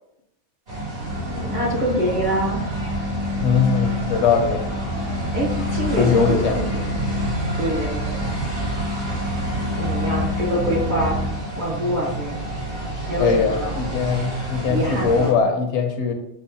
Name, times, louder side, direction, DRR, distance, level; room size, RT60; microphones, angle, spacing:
sound 1, 0.7-15.3, right 2 dB, 70° right, 1.9 m, -29 dB
sound 2, 1.0-11.3, left 2 dB, 85° right, 1.6 m, -28 dB
voice 1, 1.3-2.6 5.3-7.2 7.6-8.4 9.7-11.3 11.6-12.4 13.0-13.7 14.7-15.4, equal, 45° right, -2 dB, 0.8 m, -25 dB
voice 2, 3.4-4.6 6.0-6.5 13.2-16.1, left 5 dB, 75° left, 5 dB, 0.8 m, -21 dB
5.4 x 2.1 x 2.6 m, 0.81 s
omnidirectional pair, 1.2 m